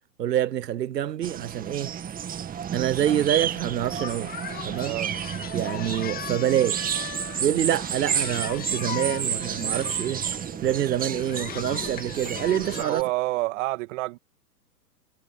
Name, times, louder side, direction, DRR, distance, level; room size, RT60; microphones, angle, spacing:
voice 1, 0.2-1.9 2.7-4.3 4.6-5.0 5.5-7.0 7.4-13.0, right 11 dB, 85° right, 1.0 m, -26 dB
sound 1, 1.2-12.8, right 8 dB, 20° right, 2.1 m, -31 dB
Singing, 3.1-13.0, left 10 dB, 20° left, 1.8 m, -39 dB
voice 2, 12.6-14.2, right 20 dB, 50° right, 2.2 m, -28 dB
hypercardioid pair, 125°, 48 cm